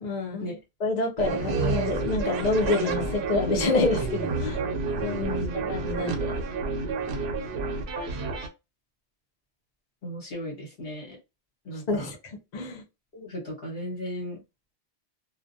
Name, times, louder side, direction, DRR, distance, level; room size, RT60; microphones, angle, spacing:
voice 1, 0.0-4.6 5.7-6.4 11.9-12.1 12.5-12.8, left 2 dB, 45° left, 0.7 m, -27 dB
sound 1, 1.2-8.5, right 3 dB, 70° right, 0.8 m, -29 dB
voice 2, 5.0-5.7 10.0-11.2 11.6-12.1 13.1-14.4, left 1 dB, 65° left, 1.3 m, -35 dB
2.4 x 2.1 x 2.5 m
omnidirectional pair, 1.1 m